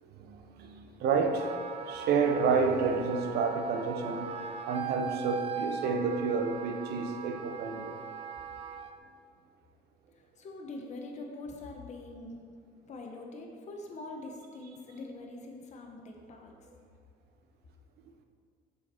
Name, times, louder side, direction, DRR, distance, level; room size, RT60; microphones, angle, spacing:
voice 1, 0.2-1.6 1.9-4.3 4.7-8.0, right 5 dB, 70° right, 0.7 m, -29 dB
Wind instrument woodwind instrument, 1.2-8.9, right 6 dB, 35° right, 0.5 m, -40 dB
voice 2, 10.4-12.6 12.8-16.5, left 2 dB, 45° left, 0.9 m, -44 dB
6.6 x 5.0 x 4.3 m
cardioid pair, 110°, 17 cm